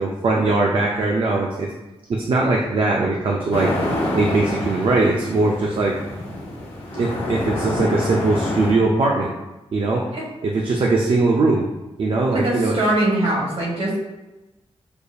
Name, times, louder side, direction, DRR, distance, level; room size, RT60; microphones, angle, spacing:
voice 1, 0.0-1.7 2.1-3.7 4.1-6.0 6.9-9.3 9.7-10.0 10.4-11.6 12.0-12.8, right 3 dB, 55° right, -1 dB, 0.5 m, -20 dB
sound 1, 3.5-8.7, left 1 dB, 70° left, 1.1 m, -27 dB
voice 2, 12.3-14.0, right 1 dB, 70° right, -3 dB, 1.3 m, -22 dB
6.5 x 2.6 x 2.4 m, 1.0 s
wide cardioid pair, 170°, 11 cm